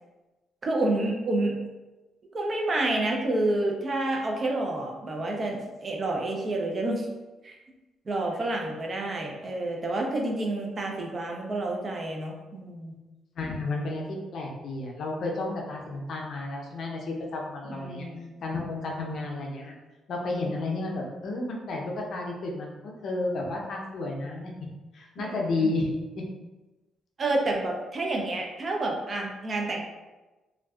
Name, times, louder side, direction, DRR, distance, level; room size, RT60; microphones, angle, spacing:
voice 1, 0.6-1.6 2.3-7.1 7.4-7.6 8.1-13.0 17.7-18.3 25.2-25.7 27.2-29.8, right 2 dB, 40° right, 0 dB, 0.4 m, -29 dB
voice 2, 13.4-18.1 18.4-19.7 20.1-24.5 24.9-25.9, left 2 dB, 60° left, -1 dB, 0.5 m, -32 dB
2.5 x 2.2 x 2.3 m, 1.1 s
cardioid pair, 90°, 0 cm